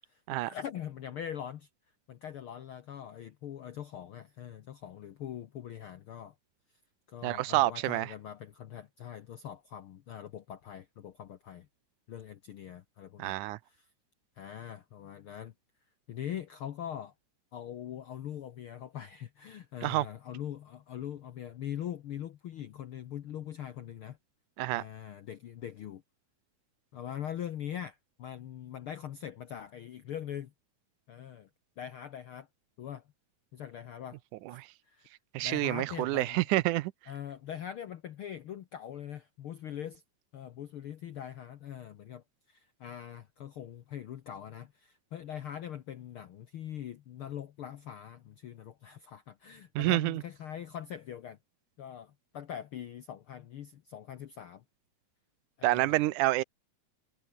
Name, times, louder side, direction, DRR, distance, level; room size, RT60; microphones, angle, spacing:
voice 1, 0.1-1.7 2.1-6.3 7.1-11.7 12.1-13.4 13.7-13.8 14.4-15.5 16.1-17.1 17.5-24.2 24.7-26.0 26.9-30.5 31.1-31.5 31.8-32.5 32.8-33.0 33.5-34.2 34.5-34.6 34.9-35.1 35.4-36.4 37.1-40.0 40.3-51.4 51.8-54.6 55.6-56.1, left 10 dB, 70° left, 1.3 m, -42 dB
voice 2, 7.2-8.1 13.2-13.6 19.8-20.1 24.6-24.8 34.4-34.7 35.3-36.9 49.8-50.2 55.6-56.4, right 18 dB, 80° right, 2.1 m, -28 dB
omnidirectional pair, 3.7 m